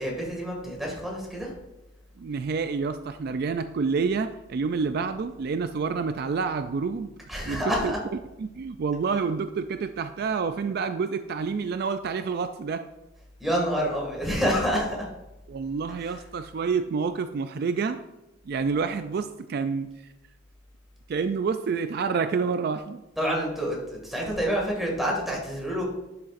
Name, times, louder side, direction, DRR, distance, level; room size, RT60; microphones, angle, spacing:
voice 1, 0.0-1.5 7.3-8.0 13.4-15.1 16.0-16.2 23.2-25.8, equal, ahead, -2 dB, 2.1 m, -28 dB
voice 2, 2.2-7.1 7.5-7.9 8.4-12.9 15.5-18.0 18.5-20.1 21.1-23.0, right 5 dB, 55° right, 9 dB, 0.3 m, -28 dB
11.0 x 6.4 x 2.5 m, 0.98 s
head